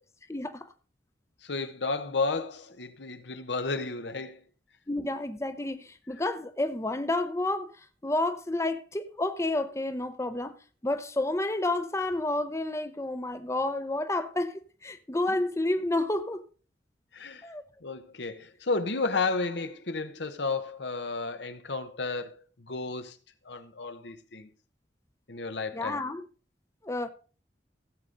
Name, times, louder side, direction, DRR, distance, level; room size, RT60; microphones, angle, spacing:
voice 1, 0.3-0.7 4.9-7.7 8.0-10.5 10.8-16.4 17.4-17.6 25.7-26.2 26.8-27.1, left 2 dB, 15° left, 0.7 m, -30 dB
voice 2, 1.4-4.4 17.1-17.5 17.8-23.2 23.4-24.5 25.3-26.0, left 3 dB, 75° left, 1.1 m, -32 dB
16.0 x 7.9 x 3.9 m
head